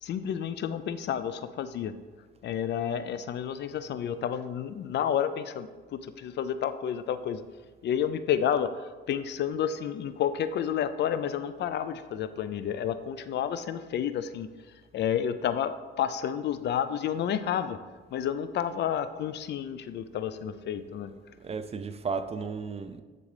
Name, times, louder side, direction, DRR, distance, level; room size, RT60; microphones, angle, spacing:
voice 1, 0.0-1.9 2.4-7.4 7.8-8.7 9.1-14.5 14.9-17.8 18.1-21.1, left 9 dB, 60° left, 12 dB, 0.4 m, -30 dB
voice 2, 21.1-23.0, right 5 dB, 30° right, 10 dB, 0.4 m, -35 dB
10.5 x 3.8 x 3.3 m, 1.4 s
cardioid pair, 90°, 20 cm